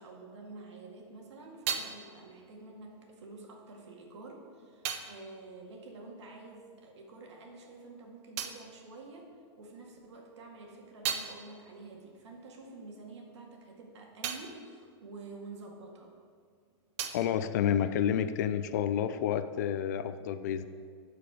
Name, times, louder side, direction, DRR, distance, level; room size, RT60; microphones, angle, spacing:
voice 1, 0.0-16.1, right 3 dB, 75° right, 1 dB, 2.0 m, -49 dB
sound 1, 0.8-6.8 7.1-9.8 10.2-16.2 16.5-18.5, right 8 dB, 30° right, 0.5 m, -42 dB
voice 2, 17.1-20.7, left 9 dB, 40° left, 12 dB, 0.4 m, -29 dB
13.0 x 4.9 x 5.0 m, 2.1 s
supercardioid pair, 175°, 15 cm